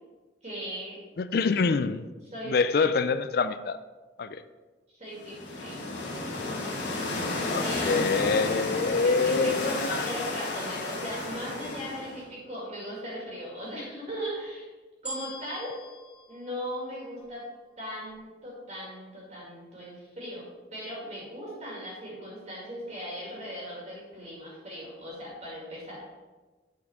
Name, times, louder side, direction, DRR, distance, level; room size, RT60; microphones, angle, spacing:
voice 1, 0.4-1.0 2.3-2.9 4.9-5.8 7.6-8.0 9.0-14.7 15.0-15.7 16.3-17.4 17.8-26.1, equal, 35° right, -4 dB, 2.1 m, -38 dB
voice 2, 1.2-2.0 2.4-3.8 4.2-4.4 7.4-10.1, left 4 dB, 50° left, 12 dB, 0.3 m, -26 dB
sound 1, 5.2-12.2, left 2 dB, 70° left, 1.6 m, -32 dB
sound 2, 15.1-17.4 18.1-18.2, equal, 5° right, 1.1 m, -43 dB
8.3 x 4.3 x 4.8 m, 1.3 s
head